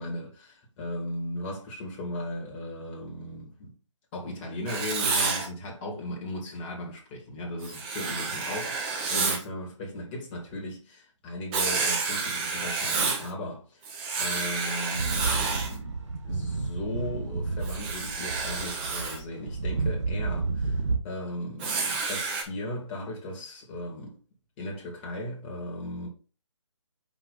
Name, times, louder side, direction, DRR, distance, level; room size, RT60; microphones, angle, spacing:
voice 1, 0.0-3.7 4.1-13.9 14.2-16.0 16.2-24.2 24.6-26.1, left 1 dB, 20° left, 2.3 m, -37 dB
Writing, 4.7-5.5 7.6-9.4 11.5-13.3 13.8-15.8 17.6-19.2 21.6-22.4, right 4 dB, 20° right, 1.2 m, -29 dB
sound 1, 14.9-21.0, right 4 dB, 70° right, 1.7 m, -31 dB
5.5 x 5.1 x 4.1 m
figure-of-eight pair, 150°, 16 cm